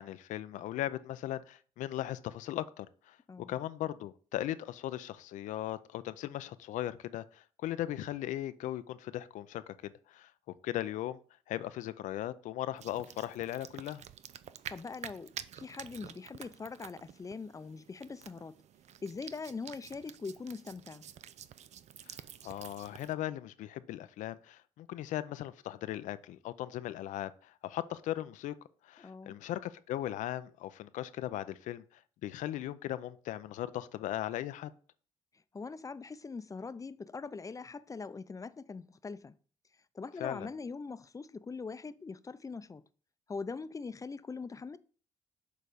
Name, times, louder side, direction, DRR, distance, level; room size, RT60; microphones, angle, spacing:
voice 1, 0.0-3.2 3.5-10.3 10.6-11.2 11.5-14.0 22.1-22.2 22.4-28.5 28.8-31.8 32.2-34.7 40.2-40.5, left 13 dB, 75° left, 0.5 m, -38 dB
sound 1, 12.8-23.1, right 10 dB, 60° right, 0.5 m, -49 dB
voice 2, 14.7-18.6 19.0-21.0 29.0-29.3 35.5-39.4 39.9-42.8 43.3-44.8, left 4 dB, 25° left, 0.6 m, -42 dB
6.7 x 4.0 x 5.0 m
supercardioid pair, 60°, 13 cm